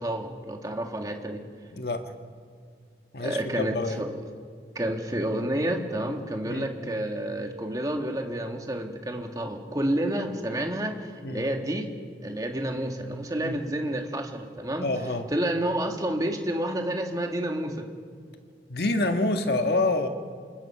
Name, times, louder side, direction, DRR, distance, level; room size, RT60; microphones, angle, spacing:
voice 1, 0.0-1.4 3.2-4.2 4.8-11.9 12.2-14.9 15.3-17.9, right 1 dB, 20° right, 3 dB, 2.0 m, -29 dB
voice 2, 1.7-2.1 3.1-4.0 6.4-6.6 11.2-11.4 13.4-13.5 14.8-15.3 18.7-20.1, left 2 dB, 60° left, 6 dB, 1.6 m, -27 dB
27.5 x 21.0 x 5.9 m, 2.3 s
head